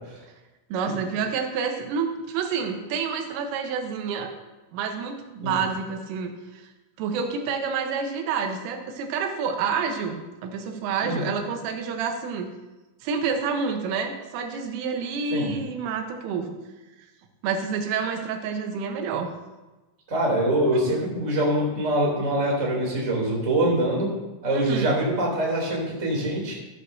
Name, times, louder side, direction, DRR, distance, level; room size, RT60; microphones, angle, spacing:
voice 1, 0.7-4.3 4.7-6.6 7.0-12.5 13.0-16.6 17.4-19.4 24.5-24.9, right 5 dB, 90° right, 4 dB, 3.6 m, -28 dB
voice 2, 20.1-24.1 24.4-26.5, right 1 dB, 20° right, -3 dB, 2.5 m, -24 dB
13.0 x 12.0 x 2.7 m, 1.1 s
omnidirectional pair, 5.5 m